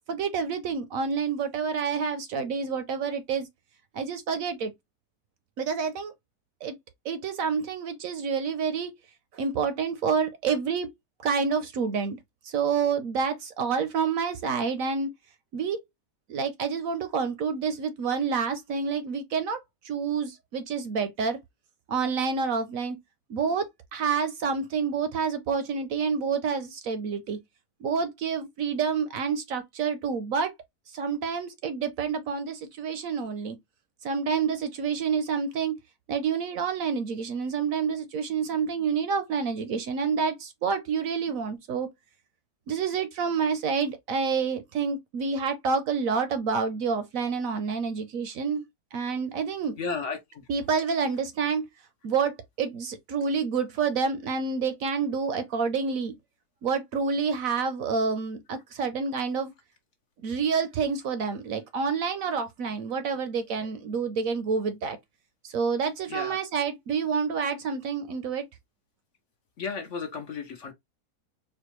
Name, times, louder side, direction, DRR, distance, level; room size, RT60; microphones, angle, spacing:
voice 1, 0.1-3.5 3.9-4.7 5.6-6.1 6.6-6.8 7.0-8.9 9.3-10.9 11.2-12.2 12.4-15.1 15.5-15.8 16.3-19.6 19.8-21.4 21.9-23.0 23.3-27.4 27.8-30.5 30.9-33.6 34.0-35.8 36.1-41.9 42.7-48.6 48.9-49.7 50.5-51.6 52.0-56.1 56.6-59.5 60.2-65.0 65.4-68.5, right 5 dB, 65° right, 0.9 m, -28 dB
voice 2, 49.8-50.4 66.1-66.4 69.6-70.7, left 5 dB, 55° left, 0.9 m, -34 dB
4.3 x 2.3 x 3.0 m
omnidirectional pair, 1.7 m